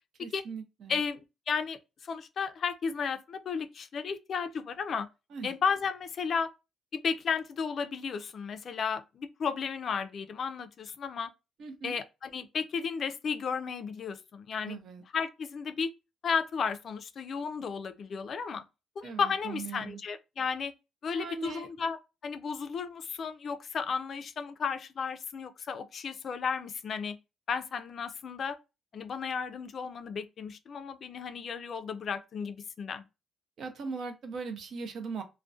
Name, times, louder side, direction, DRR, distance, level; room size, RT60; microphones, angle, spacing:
voice 1, 0.2-1.0 5.3-5.5 11.6-12.0 14.6-15.0 19.0-20.0 21.1-21.7 33.6-35.2, right 5 dB, 65° right, 0.5 m, -39 dB
voice 2, 0.9-5.1 5.4-6.5 6.9-11.3 11.8-14.8 15.1-15.9 16.2-18.6 19.0-20.7 21.0-22.0 22.2-27.2 27.5-28.6 28.9-33.0, left 6 dB, 55° left, 0.3 m, -33 dB
2.3 x 2.1 x 2.5 m
cardioid pair, 90°, 0 cm